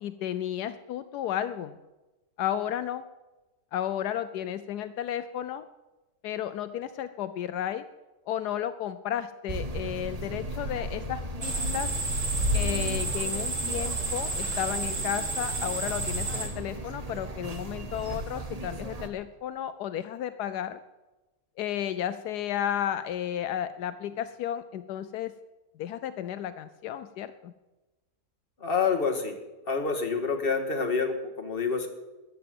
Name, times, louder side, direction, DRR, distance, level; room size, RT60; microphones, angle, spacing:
voice 1, 0.0-1.8 2.4-3.0 3.7-5.6 6.2-7.8 8.3-11.9 12.5-20.8 21.6-25.3 25.8-27.5, left 10 dB, 80° left, 12 dB, 1.2 m, -33 dB
sound 1, 9.5-19.1, right 2 dB, 25° right, 1.1 m, -37 dB
sound 2, 11.4-16.5, right 1 dB, 50° right, 2.4 m, -30 dB
voice 2, 28.6-29.4 29.7-31.9, left 5 dB, 35° left, 3 dB, 2.0 m, -27 dB
14.0 x 10.0 x 7.8 m, 1.1 s
omnidirectional pair, 1.7 m